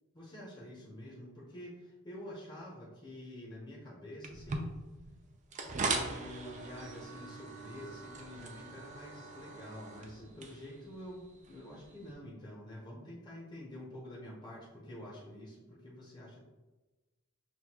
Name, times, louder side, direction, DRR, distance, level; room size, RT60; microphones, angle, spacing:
voice 1, 0.1-4.7 6.1-16.4, left 1 dB, 20° left, -6 dB, 0.7 m, -48 dB
sound 1, 4.2-12.1, right 3 dB, 35° right, 0.4 m, -41 dB
6.2 x 2.2 x 2.8 m, 1.2 s
head